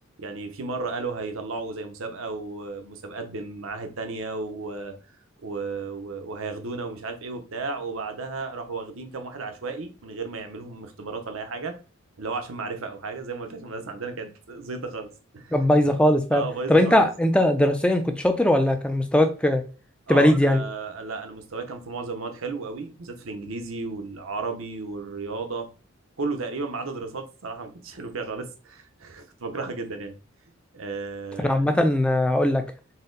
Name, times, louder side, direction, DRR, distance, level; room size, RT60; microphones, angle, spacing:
voice 1, 0.2-4.9 5.4-11.7 12.2-15.1 15.3-15.6 16.3-17.0 20.1-25.7 26.2-30.1 30.7-31.7, right 3 dB, 75° right, 6 dB, 0.7 m, -34 dB
voice 2, 15.5-16.4 16.7-19.6 20.1-20.6 31.4-32.6, left 1 dB, 5° left, 6 dB, 0.4 m, -20 dB
4.1 x 2.1 x 3.8 m, 0.34 s
head